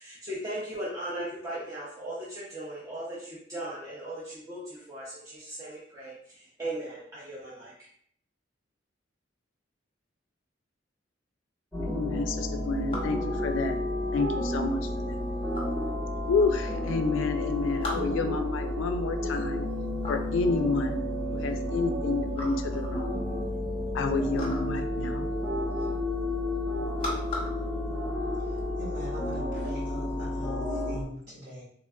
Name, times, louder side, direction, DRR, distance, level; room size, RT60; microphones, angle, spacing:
voice 1, 0.0-7.7, right 1 dB, 20° right, -7 dB, 0.6 m, -38 dB
sound 1, 11.7-31.0, left 1 dB, ahead, 1.0 m, -31 dB
voice 2, 11.8-13.8 14.1-15.2 16.3-19.6 20.1-21.0 21.3-23.2 23.9-25.2, left 3 dB, 80° left, 6 dB, 0.3 m, -29 dB
sound 2, 12.3-28.7, left 1 dB, 30° left, 0.7 m, -43 dB
voice 3, 28.8-31.6, equal, 60° right, -7 dB, 1.5 m, -42 dB
3.4 x 2.2 x 2.2 m, 0.63 s
head